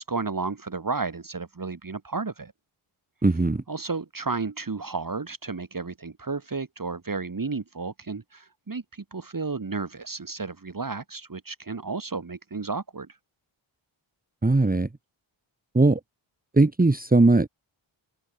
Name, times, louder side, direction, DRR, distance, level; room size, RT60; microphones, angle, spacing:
voice 1, 0.0-2.5 3.7-13.1, right 4 dB, 40° right, 2.7 m, -32 dB
voice 2, 3.2-3.6 14.4-14.9 15.7-16.0 16.6-17.5, right 2 dB, 15° right, 1.5 m, -19 dB
cardioid pair, 45°, 49 cm